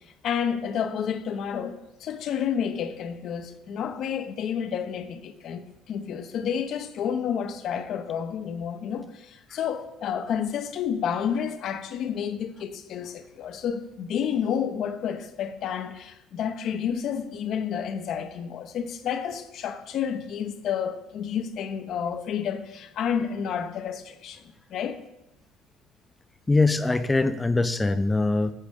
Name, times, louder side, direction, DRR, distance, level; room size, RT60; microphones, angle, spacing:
voice 1, 0.2-24.4 24.7-25.0, left 8 dB, 60° left, 0.8 m, -30 dB
voice 2, 26.5-28.5, left 3 dB, 15° left, 0.6 m, -22 dB
10.0 x 7.4 x 3.6 m
supercardioid pair, 80°, 0 cm